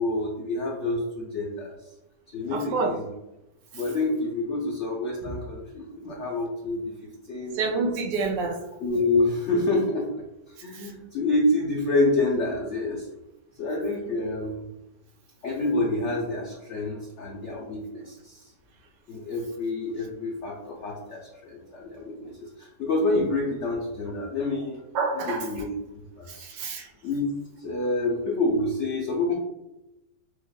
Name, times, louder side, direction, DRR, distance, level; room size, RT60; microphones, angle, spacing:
voice 1, 0.0-1.7 2.3-3.1 3.7-7.6 7.8-7.9 8.8-10.1 10.5-13.1 13.6-14.6 15.4-18.5 19.1-24.8 25.1-26.5 27.0-29.3, left 2 dB, 80° left, -1 dB, 0.6 m, -28 dB
voice 2, 2.5-3.0 7.6-8.6 24.9-25.5 26.3-26.9, right 4 dB, 85° right, 1 dB, 1.3 m, -27 dB
6.3 x 2.1 x 2.2 m, 0.93 s
omnidirectional pair, 1.9 m